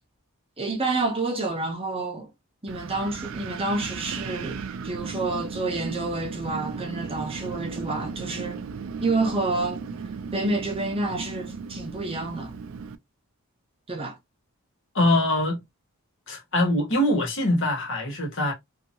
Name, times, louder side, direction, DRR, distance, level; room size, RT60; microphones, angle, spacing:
voice 1, 0.6-2.3 2.6-8.6 9.0-9.8 10.3-12.6 13.9-14.2, right 2 dB, 25° right, 0.7 m, -29 dB
Wind, 2.7-13.0, right 5 dB, 65° right, 0.4 m, -36 dB
voice 2, 14.9-15.6 16.3-18.5, left 1 dB, 60° left, 1.1 m, -23 dB
2.8 x 2.7 x 2.6 m
head